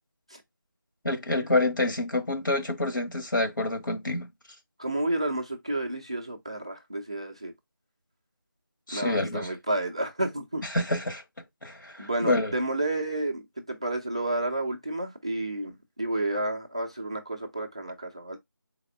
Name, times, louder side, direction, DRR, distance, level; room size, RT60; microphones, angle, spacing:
voice 1, 1.0-4.3 8.9-9.5 10.7-11.2 11.6-12.5, left 2 dB, 70° left, 1.4 m, -27 dB
voice 2, 4.8-7.5 8.9-10.6 12.0-18.4, right 1 dB, 15° right, 0.4 m, -31 dB
4.1 x 3.1 x 4.0 m
figure-of-eight pair, 165°, 11 cm